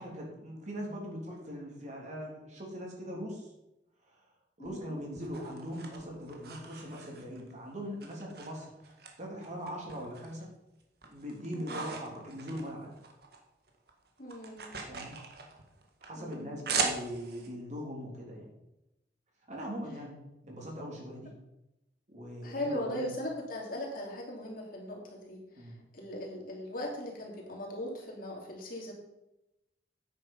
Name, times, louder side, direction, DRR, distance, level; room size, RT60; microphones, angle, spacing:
voice 1, 0.0-3.5 4.1-4.2 4.6-10.5 11.1-12.9 14.9-15.2 16.1-18.5 19.5-21.3 22.1-23.1 25.6-25.8, equal, 40° right, -2 dB, 3.2 m, -41 dB
voice 2, 4.6-4.9 11.5-11.8 14.2-14.7 16.2-16.5 22.4-28.9, left 1 dB, 55° left, -2 dB, 2.8 m, -39 dB
sound 1, 4.6-7.5 8.0-9.1 9.4-10.4 10.8-13.4 13.7-17.5, right 5 dB, 60° right, 1.6 m, -39 dB
9.4 x 8.3 x 5.5 m, 0.91 s
head